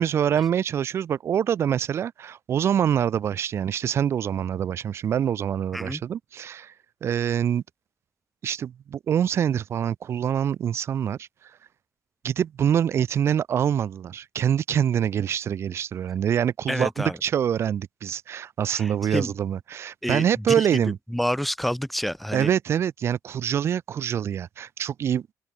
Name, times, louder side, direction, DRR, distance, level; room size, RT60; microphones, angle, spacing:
voice 1, 0.0-6.7 7.0-7.6 8.4-11.3 12.2-21.0 22.3-25.3, right 9 dB, 40° right, 0.7 m, -25 dB
voice 2, 16.7-17.2 18.7-19.3 20.0-22.5, equal, ahead, 2.2 m, -28 dB
open air
cardioid pair, 170°, 6 cm